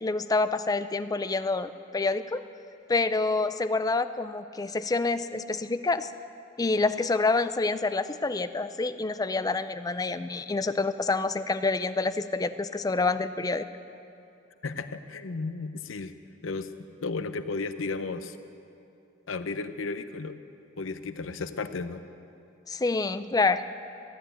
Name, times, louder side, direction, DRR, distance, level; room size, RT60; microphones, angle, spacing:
voice 1, 0.0-2.4 2.9-6.1 6.6-13.7 22.7-23.6, left 3 dB, 20° left, 12 dB, 0.4 m, -27 dB
voice 2, 14.6-16.1 16.4-16.7 17.0-18.4 19.3-20.4 20.8-22.0, left 3 dB, 90° left, 11 dB, 0.7 m, -34 dB
14.5 x 10.5 x 8.9 m, 2.7 s
head